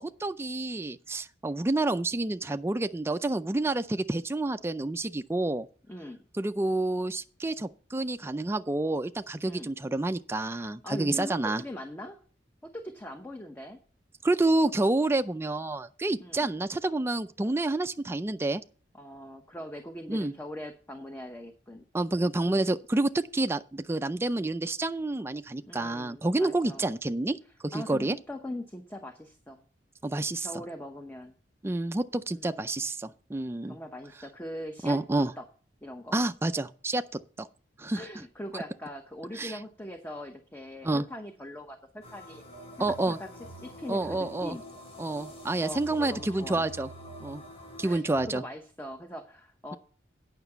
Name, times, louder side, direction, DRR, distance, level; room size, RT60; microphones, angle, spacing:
voice 1, 0.0-5.7 6.3-11.6 14.2-18.6 20.1-20.3 21.9-27.4 27.6-28.2 30.0-30.5 31.6-33.8 34.8-35.3 36.1-37.0 37.4-37.5 37.8-38.1 38.5-38.6 39.4-39.6 40.8-41.0 42.8-43.2 43.9-44.6 45.0-46.9 47.2-47.4 47.8-48.4, right 2 dB, 15° right, 0.4 m, -29 dB
voice 2, 5.9-6.3 9.5-9.7 10.4-12.2 12.6-13.8 16.2-16.5 18.9-21.9 25.6-26.9 27.7-29.7 30.4-31.4 32.3-32.7 33.6-35.0 35.4-35.5 35.8-36.2 37.9-42.4 43.1-43.3 43.6-44.6 45.6-46.7 47.8-49.8, left 1 dB, 10° left, 0.8 m, -41 dB
sound 1, 42.0-48.0, left 2 dB, 35° left, 3.4 m, -47 dB
Telephone, 42.5-44.8 45.2-48.4, right 6 dB, 60° right, 0.6 m, -49 dB
9.3 x 5.9 x 6.8 m
head